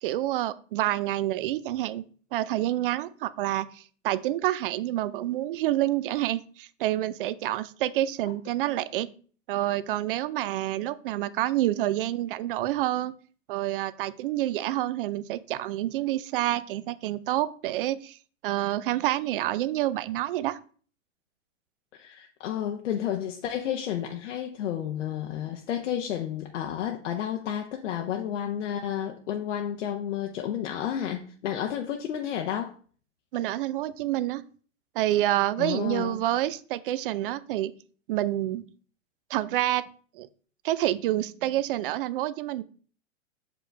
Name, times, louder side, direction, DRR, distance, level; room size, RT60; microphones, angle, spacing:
voice 1, 0.0-9.1 9.5-13.1 13.5-18.2 18.4-20.6 33.3-34.4 34.9-37.7 38.1-38.6 39.3-39.8 40.2-40.3 40.6-42.6, right 14 dB, 45° right, 0.5 m, -28 dB
voice 2, 21.9-32.8 35.6-36.2, left 10 dB, 65° left, 0.9 m, -31 dB
6.3 x 5.1 x 3.3 m
hypercardioid pair, 130°, 39 cm